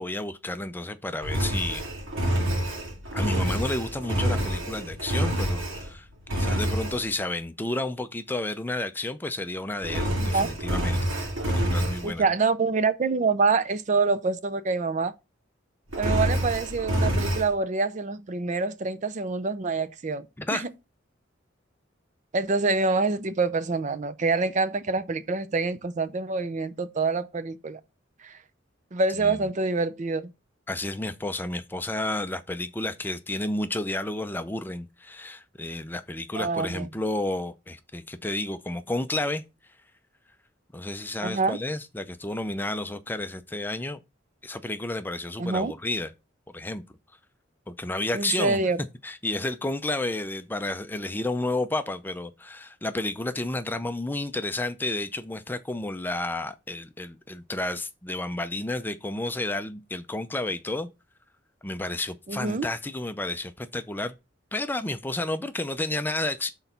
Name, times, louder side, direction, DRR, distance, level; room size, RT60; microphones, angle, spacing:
voice 1, 0.0-1.9 3.1-11.1 11.5-12.2 20.4-20.6 29.2-29.5 30.7-39.4 40.7-44.0 44.4-46.1 46.5-46.8 47.7-48.6 49.0-60.9 61.6-64.1 64.5-66.5, left 2 dB, 10° left, 0.5 m, -31 dB
Engine, 1.2-5.9 6.3-7.0 9.8-12.1 15.9-17.5, equal, 85° right, 2.4 m, -27 dB
voice 2, 10.2-10.5 12.0-15.1 16.0-20.3 20.5-20.7 22.3-27.8 28.2-28.4 28.9-30.3 36.3-36.9 41.2-41.6 45.4-45.7 48.1-48.8 62.3-62.7, right 4 dB, 40° right, 0.5 m, -26 dB
6.2 x 3.9 x 5.6 m
head